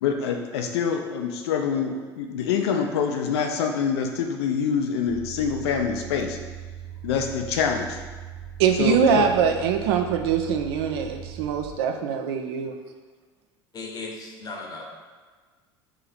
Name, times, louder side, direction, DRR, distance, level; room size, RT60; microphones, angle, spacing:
voice 1, 0.0-6.4 7.0-8.0 8.8-9.3, left 6 dB, 70° left, 4 dB, 0.5 m, -25 dB
sound 1, 5.1-11.7, right 9 dB, 30° right, 1.2 m, -40 dB
voice 2, 8.6-12.8, right 7 dB, 65° right, 5 dB, 0.4 m, -23 dB
voice 3, 13.7-14.8, left 3 dB, 25° left, 0 dB, 0.8 m, -37 dB
2.9 x 2.8 x 4.0 m, 1.4 s
hypercardioid pair, 75°, 14 cm